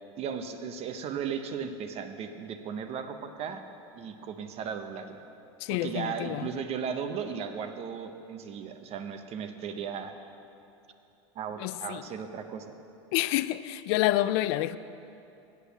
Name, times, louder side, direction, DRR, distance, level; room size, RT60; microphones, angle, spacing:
voice 1, 0.2-3.6 4.0-5.2 5.7-10.1 11.3-12.7, right 7 dB, 45° right, 0.9 m, -36 dB
voice 2, 5.6-6.5 11.6-12.0 13.1-14.8, left 15 dB, 60° left, 0.4 m, -28 dB
8.4 x 8.1 x 7.1 m
hypercardioid pair, 95°, 15 cm